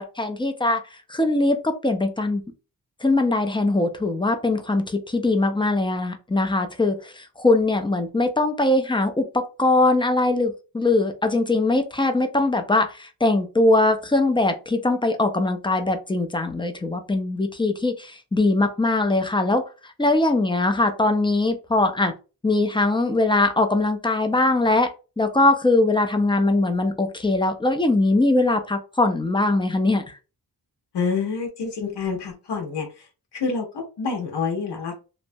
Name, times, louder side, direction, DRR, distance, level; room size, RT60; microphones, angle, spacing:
voice 1, 0.0-2.4 3.0-22.1 22.4-24.9 25.2-30.2, left 2 dB, 15° left, 6 dB, 0.3 m, -21 dB
voice 2, 30.9-34.9, left 5 dB, 80° left, 2 dB, 0.8 m, -28 dB
3.0 x 2.2 x 2.6 m, 0.31 s
wide cardioid pair, 140°, 40 cm